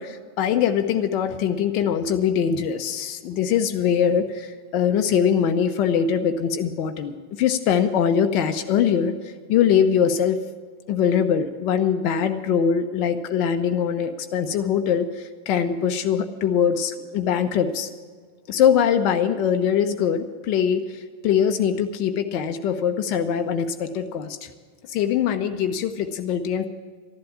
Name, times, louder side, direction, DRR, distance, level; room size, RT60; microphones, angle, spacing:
voice 1, 0.0-9.1 9.5-10.4 10.9-17.9 18.5-24.5 24.9-26.6, left 8 dB, 40° left, 6 dB, 1.0 m, -22 dB
13.5 x 11.5 x 7.2 m, 1.5 s
figure-of-eight pair, 90°, 0 cm